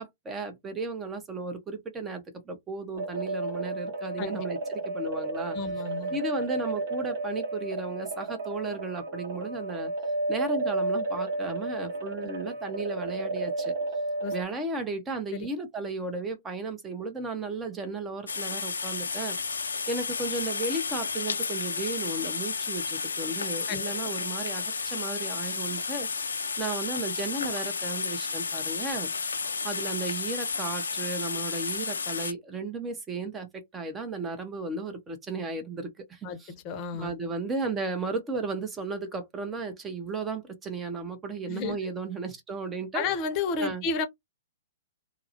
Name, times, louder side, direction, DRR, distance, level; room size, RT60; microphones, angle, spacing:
voice 1, 0.0-5.6 6.1-9.9 10.3-13.7 14.3-19.4 19.9-26.1 26.6-29.1 29.6-36.5 36.9-43.1 43.6-43.8, right 3 dB, 15° right, 0.6 m, -34 dB
sound 1, 2.9-14.4, right 2 dB, 55° right, 0.9 m, -32 dB
voice 2, 5.5-6.2 14.2-14.3 15.3-15.5 23.7-23.9 36.2-36.4 36.6-37.1 41.5-41.8 42.9-44.1, left 5 dB, 35° left, 0.6 m, -31 dB
Frying in oil, 18.3-32.3, left 5 dB, 80° left, 0.4 m, -32 dB
2.3 x 2.0 x 2.7 m
hypercardioid pair, 115°, 0 cm